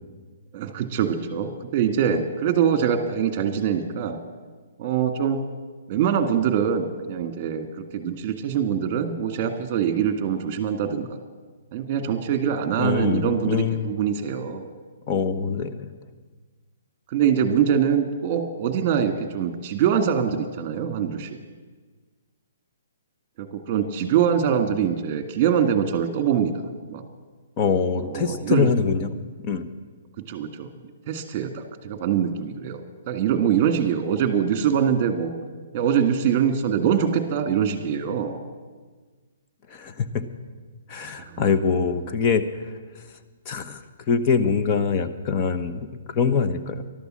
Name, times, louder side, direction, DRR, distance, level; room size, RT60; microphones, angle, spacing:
voice 1, 0.5-4.2 4.8-5.4 5.9-11.2 11.7-14.7 17.1-21.3 23.4-26.6 26.9-27.0 28.0-28.7 30.3-30.7 31.1-32.8 33.1-35.3 35.7-38.4 41.2-41.4, right 8 dB, 30° right, 7 dB, 1.8 m, -23 dB
voice 2, 12.8-13.9 15.1-15.9 27.6-29.1 29.4-29.7 39.7-40.2 40.9-42.7 43.5-43.8 44.1-46.8, left 5 dB, 30° left, 8 dB, 1.0 m, -24 dB
12.0 x 12.0 x 7.6 m, 1.4 s
hypercardioid pair, 155°, 0 cm